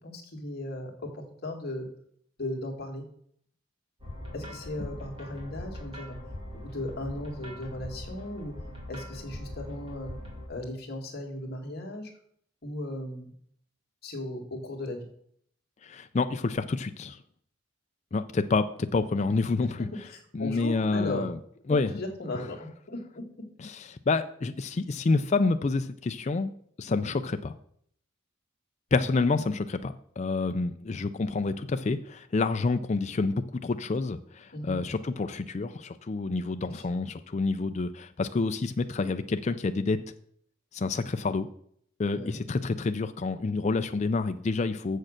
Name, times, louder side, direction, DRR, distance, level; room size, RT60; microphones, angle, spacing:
voice 1, 0.0-1.9 2.4-3.0 4.3-6.2 6.5-8.5 8.9-10.2 10.5-12.1 12.6-13.3 14.0-15.0 20.1-21.2 21.7-23.0 28.9-29.0 34.5-34.8 36.6-36.8 42.1-42.4, left 1 dB, 50° left, 1 dB, 2.0 m, -37 dB
sound 1, 4.0-10.4, left 1 dB, 25° right, 2.6 m, -41 dB
voice 2, 15.8-17.2 18.1-19.9 20.3-21.4 21.7-21.9 23.6-26.5 26.8-27.5 28.9-40.0 40.7-41.5 42.0-45.0, left 3 dB, 35° left, 8 dB, 0.4 m, -28 dB
7.3 x 6.5 x 6.5 m, 0.65 s
head